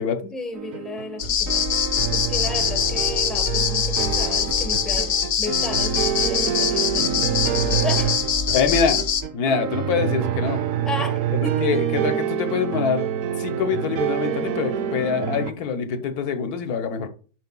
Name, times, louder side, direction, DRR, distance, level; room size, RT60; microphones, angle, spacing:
voice 1, 0.3-1.6 2.1-7.2 7.8-8.1 10.8-11.7, left 2 dB, ahead, 0.9 m, -33 dB
sound 1, 0.5-15.5, right 9 dB, 65° right, 1.0 m, -27 dB
sound 2, 1.2-9.2, left 8 dB, 65° left, 1.1 m, -23 dB
voice 2, 8.5-9.0 9.3-10.6 11.6-13.0 13.4-17.1, left 6 dB, 85° left, 1.4 m, -24 dB
10.5 x 5.2 x 2.3 m
omnidirectional pair, 1.6 m